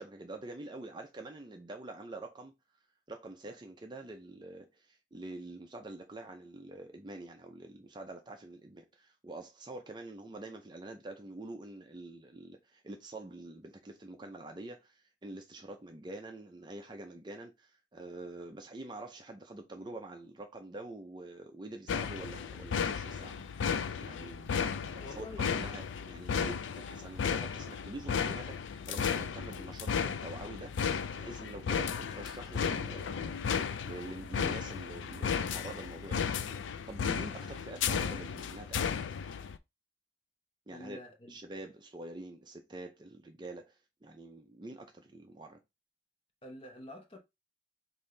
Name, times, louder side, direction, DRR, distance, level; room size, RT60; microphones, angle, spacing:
voice 1, 0.0-2.5 3.1-30.7 31.2-33.4 33.8-39.2 40.7-41.0 41.3-45.6, right 2 dB, 25° right, 0.5 m, -46 dB
sound 1, 21.9-39.6, left 6 dB, 85° left, 0.4 m, -34 dB
voice 2, 25.0-25.5 40.7-41.4 46.4-47.2, left 1 dB, 30° left, 1.0 m, -47 dB
5.4 x 2.6 x 3.3 m
head